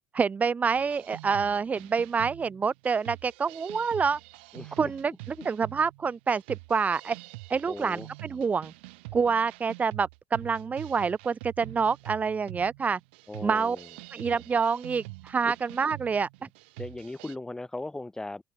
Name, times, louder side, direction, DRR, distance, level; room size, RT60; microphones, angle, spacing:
voice 1, 0.1-4.2 4.8-7.2 7.5-8.7 9.1-13.0 13.4-13.8 14.1-16.5, right 5 dB, 25° right, 0.4 m, -27 dB
sound 1, 0.7-17.4, right 25 dB, 85° right, 5.1 m, -45 dB
voice 2, 4.5-4.9 5.4-5.5 7.7-8.1 13.3-13.9 15.4-15.5 16.8-18.4, left 2 dB, 10° left, 1.6 m, -38 dB
open air
supercardioid pair, 85°, 6 cm